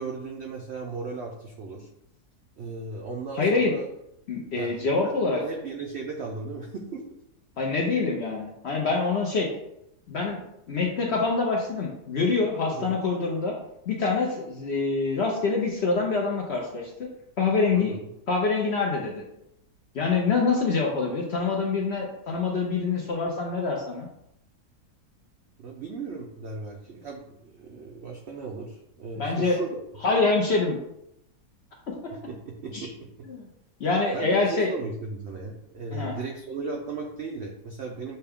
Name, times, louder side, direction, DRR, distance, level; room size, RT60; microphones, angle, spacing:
voice 1, 0.0-1.9 2.6-3.9 4.6-4.7 5.0-5.1 5.4-7.0 12.7-13.0 17.7-18.0 25.6-29.8 32.1-32.9 33.2-33.3 34.1-38.2, right 3 dB, 75° right, 1 dB, 0.6 m, -36 dB
voice 2, 3.3-3.7 4.3-5.4 7.6-9.5 10.1-10.4 10.7-13.6 13.9-16.9 17.4-18.0 18.3-19.2 19.9-24.1 29.2-29.6 30.0-30.8 32.7-32.9 33.3-33.5 33.8-34.7 35.9-36.1, left 4 dB, 60° left, -1 dB, 0.7 m, -25 dB
6.6 x 2.2 x 3.5 m, 0.80 s
omnidirectional pair, 1.7 m